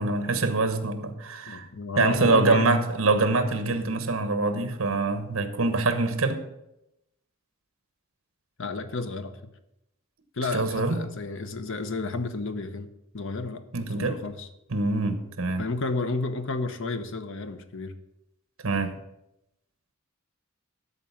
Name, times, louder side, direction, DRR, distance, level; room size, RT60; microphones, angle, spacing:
voice 1, 0.0-1.7 2.0-6.4 10.5-11.0 13.7-14.2 14.7-15.6 18.6-19.0, right 3 dB, 70° right, 9 dB, 1.1 m, -25 dB
voice 2, 1.5-2.8 8.6-9.4 10.3-12.9 13.1-14.5 15.6-17.9, left 3 dB, 60° left, 10 dB, 0.8 m, -31 dB
12.5 x 4.1 x 7.2 m, 0.87 s
head